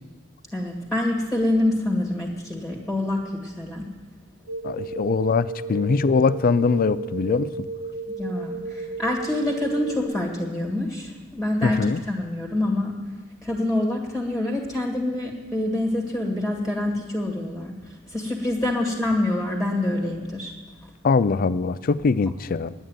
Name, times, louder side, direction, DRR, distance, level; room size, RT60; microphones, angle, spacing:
voice 1, 0.5-3.9 8.2-13.0 13.4-17.7 18.1-20.5, left 1 dB, ahead, 0 dB, 1.7 m, -26 dB
sound 1, 4.5-10.0, right 3 dB, 90° right, 2.7 m, -34 dB
voice 2, 4.6-7.5 11.6-12.0 21.0-22.7, left 4 dB, 45° left, 15 dB, 0.4 m, -22 dB
9.9 x 8.8 x 9.2 m, 1.3 s
head